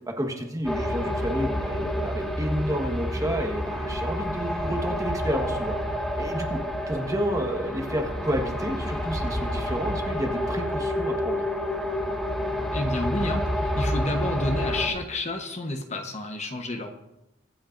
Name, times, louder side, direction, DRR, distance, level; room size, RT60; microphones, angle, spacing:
voice 1, 0.0-5.8 6.2-6.6 6.9-11.4, equal, 20° right, 3 dB, 1.4 m, -30 dB
sound 1, 0.6-14.9, equal, 5° left, 3.0 m, -29 dB
voice 2, 12.7-13.5 13.8-16.9, left 2 dB, 35° left, 4 dB, 1.1 m, -29 dB
24.0 x 8.6 x 2.6 m, 0.92 s
head